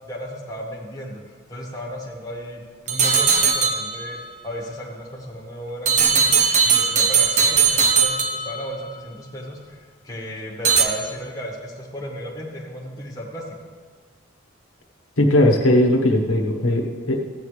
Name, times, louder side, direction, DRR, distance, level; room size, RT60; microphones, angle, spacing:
voice 1, 0.1-1.2 1.5-2.6 2.9-4.2 4.4-9.8 10.0-13.5, equal, 15° left, -3 dB, 1.5 m, -34 dB
sound 1, 2.9-4.2 5.9-8.8 10.6-10.9, right 6 dB, 35° right, 0.8 m, -19 dB
voice 2, 15.2-17.2, left 1 dB, 80° left, 1 dB, 1.2 m, -18 dB
15.0 x 9.0 x 3.3 m, 1.5 s
head